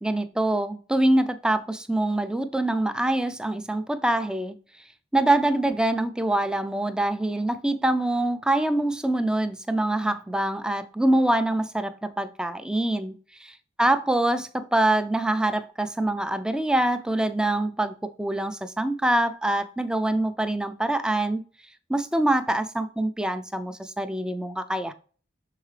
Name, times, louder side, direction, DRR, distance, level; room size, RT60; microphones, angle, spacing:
voice 1, 0.0-4.6 5.1-13.1 13.4-21.4 21.9-24.9, right 1 dB, 5° right, 0.3 m, -25 dB
6.4 x 4.6 x 3.3 m
head